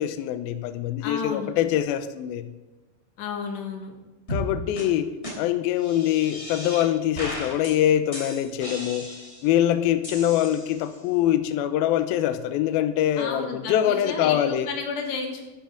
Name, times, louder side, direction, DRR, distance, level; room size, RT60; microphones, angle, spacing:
voice 1, 0.0-2.5 4.3-5.1 5.3-9.1 9.4-14.7, left 11 dB, 85° left, 10 dB, 2.1 m, -24 dB
voice 2, 1.0-1.5 3.2-3.9 13.2-15.4, left 5 dB, 70° left, 2 dB, 3.7 m, -32 dB
sound 1, 4.3-4.5 4.8-4.9 5.2-5.3 5.8-6.9 7.2-7.7 8.1-9.5 10.0-11.0, equal, 15° left, 2.9 m, -35 dB
13.5 x 11.5 x 3.9 m, 1.1 s
omnidirectional pair, 5.2 m